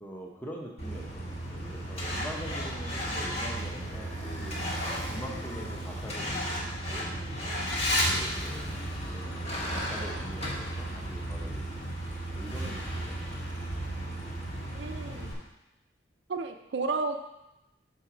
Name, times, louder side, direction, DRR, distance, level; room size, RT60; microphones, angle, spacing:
voice 1, 0.0-4.6 5.1-6.4 6.9-7.1 8.1-11.6 12.4-13.5, equal, 10° left, -2 dB, 0.8 m, -44 dB
Truck, 0.8-15.3, equal, 35° left, 1.4 m, -33 dB
voice 2, 14.6-15.4 16.3-17.2, right 4 dB, 70° right, 6 dB, 0.5 m, -33 dB
6.3 x 4.0 x 5.9 m, 0.92 s
head